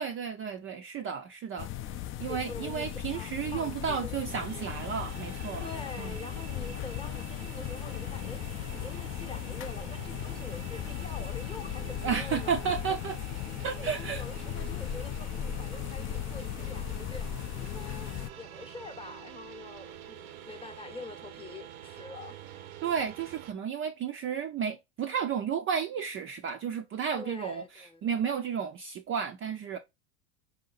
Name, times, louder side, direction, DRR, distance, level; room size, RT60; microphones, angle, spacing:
voice 1, 0.0-1.7 2.2-5.7 6.0-6.2 12.0-13.2 13.6-14.2 22.8-29.8, right 7 dB, 30° right, 0.4 m, -32 dB
sound 1, 1.6-18.3, left 11 dB, 30° left, 0.4 m, -37 dB
voice 2, 2.3-4.2 5.6-8.4 8.7-12.7 13.8-17.3 17.6-22.7 27.2-28.1, left 3 dB, 15° left, 0.8 m, -45 dB
sound 2, 4.3-23.5, right 11 dB, 80° right, 0.7 m, -47 dB
4.8 x 2.7 x 3.9 m
supercardioid pair, 105°, 42 cm